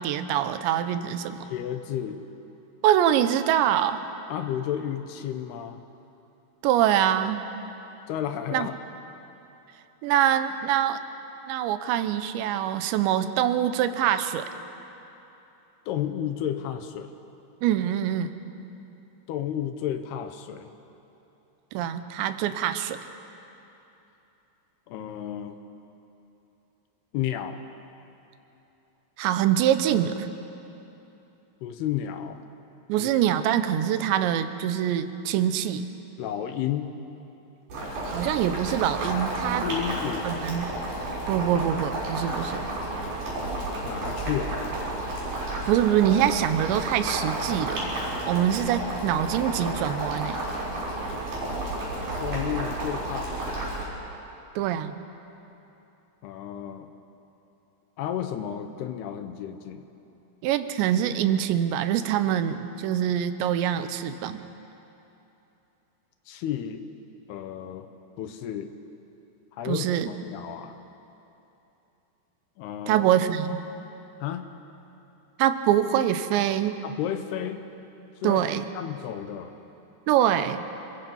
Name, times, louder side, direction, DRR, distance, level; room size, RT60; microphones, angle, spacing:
voice 1, 0.0-1.5 2.8-4.1 6.6-7.5 8.5-8.7 10.0-11.0 11.5-14.5 17.6-18.3 21.7-23.0 29.2-30.3 32.9-35.9 38.0-39.6 40.2-40.7 41.3-42.7 45.7-47.8 48.3-50.4 54.6-55.0 60.4-64.5 69.7-70.1 72.9-73.6 75.4-76.8 78.2-78.7 80.1-80.6, right 10 dB, 90° right, 10 dB, 3.2 m, -24 dB
voice 2, 1.5-2.2 4.3-5.8 8.1-8.7 15.9-17.1 19.3-20.7 24.9-25.6 27.1-27.6 31.6-32.4 33.0-33.1 36.2-37.0 39.6-40.3 43.8-44.5 52.2-53.6 56.2-56.9 58.0-59.9 66.3-66.8 67.3-67.9 68.2-68.7 69.5-70.8 72.6-73.1 74.2-74.5 76.8-77.7 78.2-78.4 78.7-79.5, left 10 dB, 75° left, 8 dB, 2.8 m, -32 dB
Boiling, 37.7-53.8, right 2 dB, 45° right, 7.5 m, -31 dB
28.0 x 21.5 x 5.5 m, 3.0 s
omnidirectional pair, 5.0 m